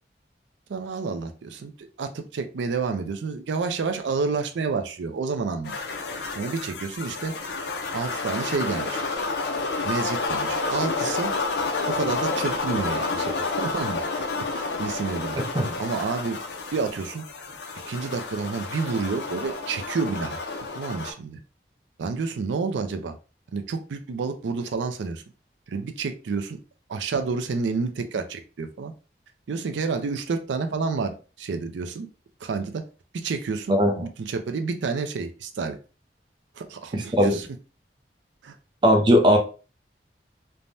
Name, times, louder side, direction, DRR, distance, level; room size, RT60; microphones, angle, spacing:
voice 1, 0.7-5.8 6.4-7.3 7.9-9.0 9.8-11.3 11.9-15.3 15.8-16.4 16.7-17.2 17.9-20.4 20.7-21.4 22.0-23.1 23.5-25.2 25.7-26.6 26.9-28.9 29.5-32.1 32.4-32.8 33.1-35.8 36.5-37.5 38.4-38.6, right 4 dB, 90° right, 6 dB, 0.4 m, -29 dB
sound 1, 5.6-21.1, left 3 dB, 70° left, 0.5 m, -30 dB
voice 2, 15.4-15.7 33.7-34.0 36.9-37.4 38.8-39.4, equal, 25° right, 3 dB, 0.4 m, -19 dB
3.3 x 2.1 x 2.6 m, 0.34 s
head